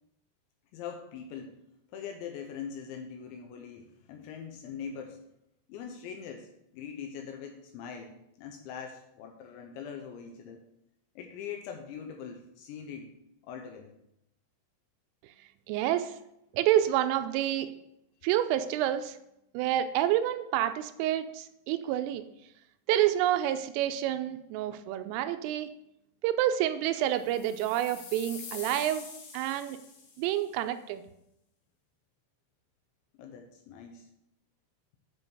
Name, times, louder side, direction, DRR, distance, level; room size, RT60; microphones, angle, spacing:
voice 1, 0.7-1.6 1.9-5.2 5.7-10.6 11.2-13.1 13.4-13.9 33.2-34.1, left 7 dB, 85° left, 3 dB, 2.8 m, -42 dB
voice 2, 15.7-16.1 16.5-17.7 18.2-19.2 19.5-22.2 22.9-25.7 26.2-29.0 29.3-29.8 30.2-31.0, right 12 dB, 85° right, 10 dB, 3.1 m, -28 dB
sound 1, 27.2-30.4, left 5 dB, 65° left, 2.9 m, -45 dB
9.9 x 4.5 x 4.8 m, 0.80 s
omnidirectional pair, 5.9 m